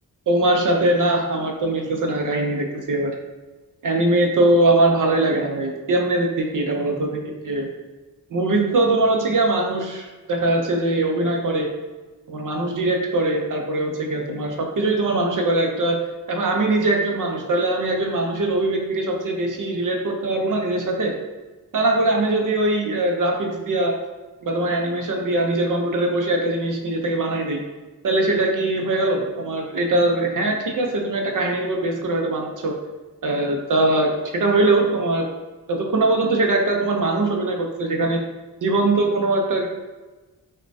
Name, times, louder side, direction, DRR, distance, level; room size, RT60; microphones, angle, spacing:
voice 1, 0.3-3.1 3.8-7.7 8.3-11.7 12.3-16.0 16.3-21.2 21.7-24.0 24.4-27.6 28.0-32.8 33.2-35.3 35.7-38.2 38.6-39.7, right 2 dB, 55° right, 1 dB, 0.5 m, -21 dB
6.2 x 2.2 x 2.6 m, 1.2 s
wide cardioid pair, 140°, 37 cm